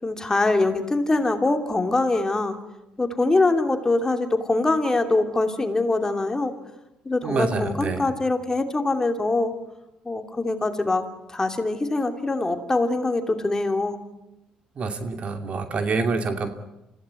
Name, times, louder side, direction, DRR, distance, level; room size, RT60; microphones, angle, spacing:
voice 1, 0.0-2.6 3.0-6.5 7.0-9.5 10.0-14.0, left 2 dB, 20° left, 6 dB, 2.8 m, -23 dB
voice 2, 7.2-8.1 14.8-16.5, right 4 dB, 50° right, 7 dB, 2.8 m, -26 dB
26.0 x 16.0 x 9.6 m, 0.92 s
supercardioid pair, 70°, 3 cm